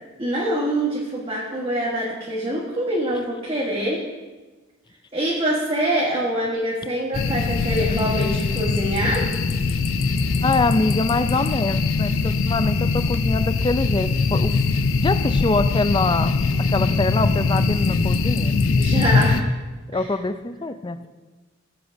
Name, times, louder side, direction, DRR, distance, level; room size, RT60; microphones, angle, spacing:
voice 1, 0.2-4.1 5.1-9.4 18.8-19.4, right 1 dB, 25° right, -5 dB, 1.4 m, -24 dB
sound 1, 7.1-19.4, left 4 dB, 85° left, 0.6 m, -22 dB
voice 2, 10.4-14.5 15.0-16.4 16.7-18.6 19.9-21.1, left 3 dB, 20° left, 11 dB, 0.4 m, -24 dB
19.5 x 8.0 x 2.7 m, 1.2 s
head